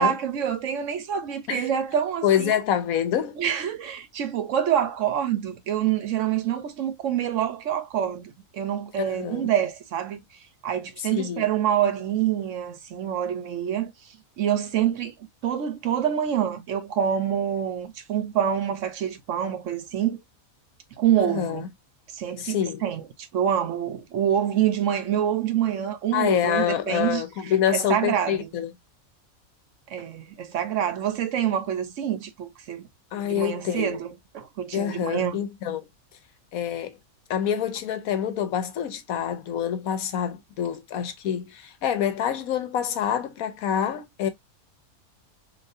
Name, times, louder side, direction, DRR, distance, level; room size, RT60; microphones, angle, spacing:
voice 1, 0.0-2.5 3.4-10.2 10.6-13.9 14.4-15.1 15.4-20.2 21.0-21.7 22.1-23.0 23.3-27.2 27.7-28.4 29.9-32.9 33.2-34.1 34.3-35.4, right 9 dB, 65° right, 0.9 m, -26 dB
voice 2, 2.2-3.4 9.0-9.5 11.0-11.5 21.2-21.7 22.4-22.8 26.1-28.7 33.1-34.0 34.7-35.8 36.5-37.0 37.3-44.3, left 9 dB, 75° left, 1.1 m, -26 dB
3.9 x 2.6 x 2.5 m
omnidirectional pair, 1.5 m